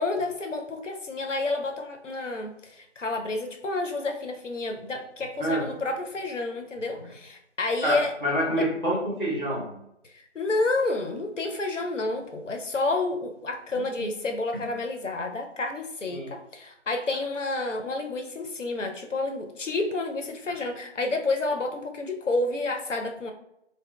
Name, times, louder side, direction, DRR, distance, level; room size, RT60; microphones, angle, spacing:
voice 1, 0.0-8.1 8.6-8.7 10.0-23.3, left 2 dB, 90° left, 4 dB, 0.6 m, -30 dB
voice 2, 7.8-9.8 13.7-14.1 14.5-14.6 16.1-16.3, equal, 45° left, -5 dB, 0.7 m, -28 dB
2.2 x 2.1 x 3.5 m, 0.79 s
figure-of-eight pair, 175°, 36 cm